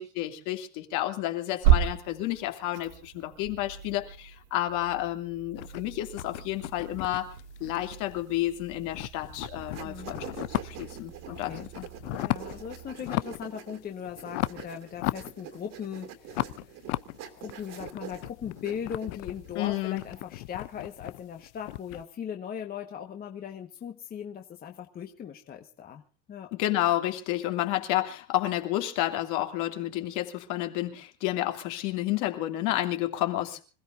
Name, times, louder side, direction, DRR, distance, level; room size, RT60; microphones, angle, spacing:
voice 1, 0.0-7.3 7.6-10.3 10.6-11.9 19.5-20.0 26.5-33.6, left 14 dB, 55° left, 2.8 m, -30 dB
sound 1, 1.5-13.0, right 10 dB, 85° right, 1.8 m, -33 dB
sound 2, 5.5-8.4 8.7-11.0 11.3-12.6 13.0-13.5 13.8-15.8 16.3-22.0, left 21 dB, 75° left, 0.8 m, -36 dB
sound 3, 9.4-20.2, right 8 dB, 45° right, 2.9 m, -45 dB
voice 2, 10.9-11.7 12.2-16.7 17.3-26.0 26.3-26.5, left 8 dB, 25° left, 1.5 m, -39 dB
26.0 x 16.0 x 2.7 m
supercardioid pair, 145°, 35 cm